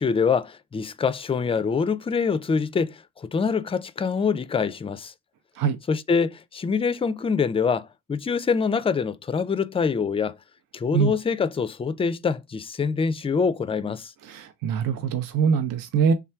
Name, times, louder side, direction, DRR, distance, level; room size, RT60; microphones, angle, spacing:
voice 1, 0.0-5.1 5.9-10.4 10.7-14.1, left 5 dB, 15° left, 0.3 m, -25 dB
voice 2, 14.2-16.1, right 6 dB, 70° right, 0.6 m, -23 dB
3.4 x 2.3 x 4.3 m
supercardioid pair, 60°, 35 cm